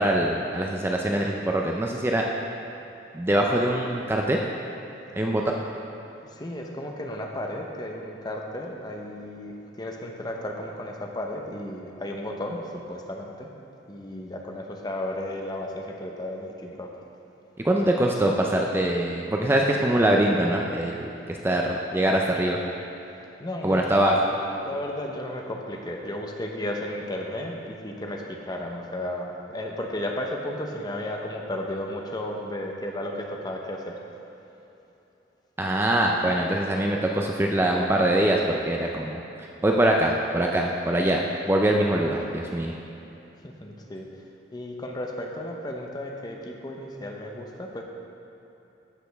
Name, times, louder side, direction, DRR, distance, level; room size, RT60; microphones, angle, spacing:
voice 1, 0.0-2.3 3.1-4.4 5.2-5.4 17.6-22.6 23.6-24.2 35.6-39.2 39.6-42.7, right 1 dB, 15° right, 0 dB, 0.4 m, -23 dB
voice 2, 6.3-13.5 13.9-16.9 23.4-34.0 43.4-44.1 44.5-47.8, left 1 dB, 25° left, 1 dB, 0.7 m, -34 dB
14.0 x 5.1 x 3.4 m, 2.9 s
head